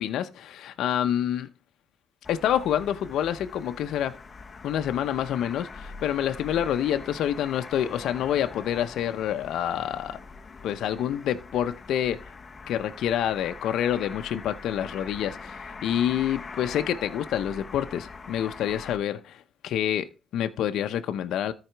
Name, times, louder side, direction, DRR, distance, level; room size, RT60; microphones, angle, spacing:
voice 1, 0.0-1.5 2.3-4.2 4.6-10.2 10.6-12.3 12.7-21.5, left 10 dB, 80° left, 0.7 m, -27 dB
sound 1, 2.2-19.0, left 4 dB, 35° left, 0.9 m, -43 dB
13.5 x 4.9 x 4.5 m
cardioid pair, 90°, 0 cm